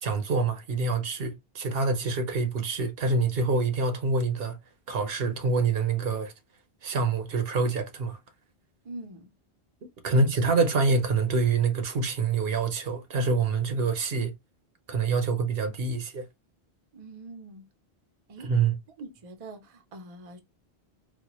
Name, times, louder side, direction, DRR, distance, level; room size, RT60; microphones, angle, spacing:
voice 1, 0.0-4.6 4.9-6.3 6.8-8.2 10.0-14.3 14.9-16.3 18.4-18.8, right 4 dB, 70° right, 0.9 m, -26 dB
voice 2, 8.8-9.3 10.1-10.2 16.9-17.6 18.3-18.5 19.0-20.4, right 2 dB, 40° right, 0.6 m, -43 dB
4.1 x 2.2 x 2.9 m
omnidirectional pair, 1.0 m